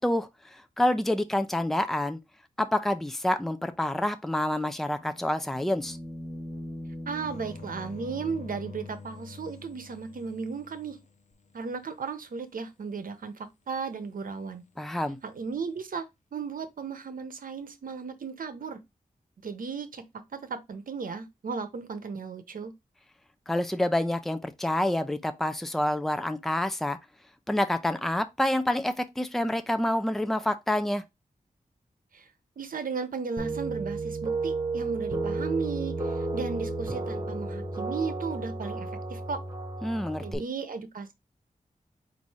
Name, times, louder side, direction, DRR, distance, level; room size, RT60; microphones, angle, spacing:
voice 1, 0.0-2.2 2.6-6.0 14.8-15.2 23.5-27.0 27.5-31.0 39.8-40.4, left 1 dB, ahead, 0.5 m, -28 dB
sound 1, 4.9-8.9 11.3-11.4, equal, 20° left, 1.5 m, -42 dB
voice 2, 7.1-11.0 11.5-14.6 15.2-16.1 16.3-18.8 19.4-20.0 20.3-22.7 32.1-32.3 32.6-39.4 40.2-41.1, right 5 dB, 75° right, 0.8 m, -35 dB
sound 2, 7.2-11.8 15.1-15.6, left 4 dB, 55° left, 0.7 m, -46 dB
sound 3, 33.4-40.3, right 3 dB, 30° right, 0.8 m, -32 dB
4.2 x 2.6 x 4.8 m
wide cardioid pair, 110°, 14 cm